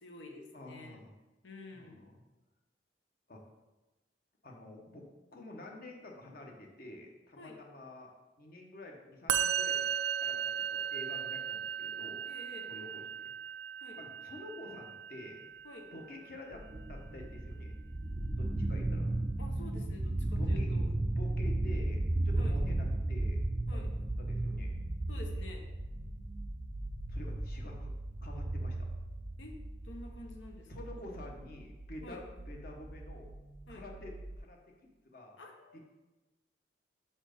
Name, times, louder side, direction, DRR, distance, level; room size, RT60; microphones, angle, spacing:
voice 1, 0.0-1.0 1.4-2.0 7.4-7.6 12.3-12.7 13.8-14.0 15.6-15.9 19.4-20.9 22.3-22.6 23.7-23.9 25.1-25.6 29.4-29.5 29.8-30.7 32.0-32.2 33.7-33.8 35.4-35.8, left 2 dB, 85° left, 3 dB, 0.9 m, -49 dB
voice 2, 0.5-1.1 1.7-2.2 3.3-3.4 4.4-8.1 8.4-9.9 10.2-12.2 12.7-13.3 14.0-15.4 15.9-16.6 16.9-17.7 18.4-19.1 20.4-20.7 21.1-23.4 23.7-23.8 24.2-24.8 27.1-27.9 28.2-28.8 30.7-33.3 33.7-35.4 35.7-35.8, left 1 dB, 50° left, 1 dB, 1.0 m, -49 dB
Musical instrument, 9.3-16.6, right 8 dB, 85° right, 0.4 m, -36 dB
sound 1, 16.5-34.4, right 1 dB, 20° right, 0.3 m, -35 dB
5.1 x 4.4 x 5.1 m, 1.1 s
head